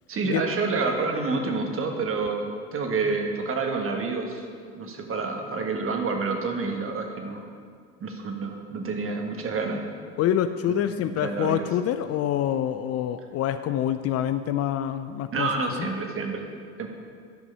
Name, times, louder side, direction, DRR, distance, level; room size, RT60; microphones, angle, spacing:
voice 1, 0.1-4.4 4.8-7.4 8.0-9.8 10.7-11.7 15.3-16.5 16.8-16.9, right 4 dB, 35° right, 3 dB, 1.5 m, -28 dB
voice 2, 10.2-15.5 15.8-15.9, left 10 dB, 45° left, 11 dB, 0.4 m, -26 dB
11.5 x 5.4 x 5.4 m, 2.1 s
hypercardioid pair, 70°, 36 cm